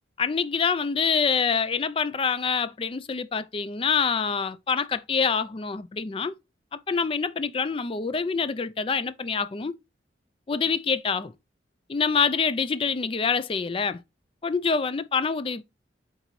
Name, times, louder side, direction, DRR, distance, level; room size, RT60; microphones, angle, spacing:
voice 1, 0.2-6.3 6.9-9.7 10.5-11.3 11.9-14.0 14.4-15.6, left 5 dB, 30° left, 0.4 m, -26 dB
8.1 x 3.9 x 3.1 m
head